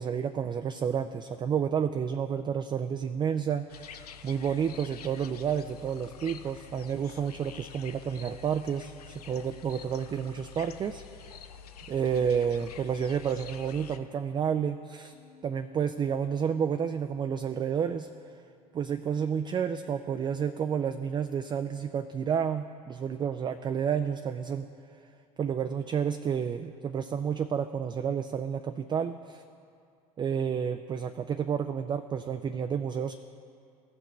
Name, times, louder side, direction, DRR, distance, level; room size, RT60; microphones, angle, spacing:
voice 1, 0.0-11.0 11.9-15.1 15.4-18.1 18.7-24.7 25.4-29.4 30.2-33.2, right 7 dB, 25° right, 8 dB, 0.3 m, -30 dB
sound 1, 3.7-14.0, left 7 dB, 90° left, 0.4 m, -47 dB
Bass guitar, 15.1-21.4, left 7 dB, 55° left, 2.0 m, -65 dB
15.5 x 6.0 x 3.1 m, 2.4 s
hypercardioid pair, 70°, 19 cm